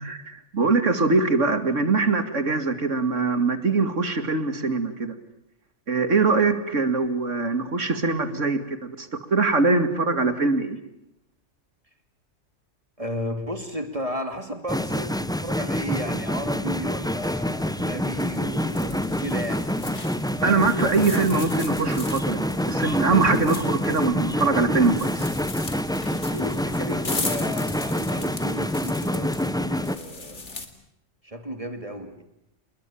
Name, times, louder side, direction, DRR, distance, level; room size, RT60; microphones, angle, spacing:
voice 1, 0.0-5.1 5.9-10.8 20.4-25.3, right 3 dB, 80° right, 9 dB, 2.7 m, -23 dB
voice 2, 13.0-19.7 26.3-30.4 31.2-32.2, equal, 30° right, 7 dB, 2.6 m, -34 dB
sound 1, 14.7-30.0, left 1 dB, 5° left, 0.9 m, -27 dB
sound 2, 17.2-30.7, left 3 dB, 70° left, 3.0 m, -38 dB
28.5 x 21.0 x 8.6 m, 0.82 s
omnidirectional pair, 1.3 m